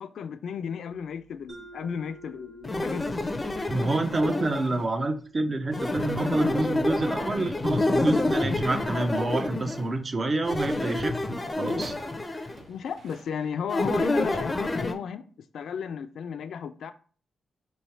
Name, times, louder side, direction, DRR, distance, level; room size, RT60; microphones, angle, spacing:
voice 1, 0.0-3.1 12.7-15.3 15.5-16.9, left 7 dB, 80° left, 0.3 m, -34 dB
Mallet percussion, 1.5-6.0, right 3 dB, 90° right, 1.7 m, -51 dB
sound 1, 2.6-4.9 5.7-9.9 10.4-12.6 13.7-14.9, left 2 dB, 20° left, 0.5 m, -28 dB
voice 2, 3.7-11.9, right 2 dB, 35° right, 0.5 m, -28 dB
sound 2, 11.7-13.9 14.7-14.8, right 3 dB, 70° right, 0.8 m, -49 dB
3.2 x 2.6 x 4.4 m
cardioid pair, 105°, 0 cm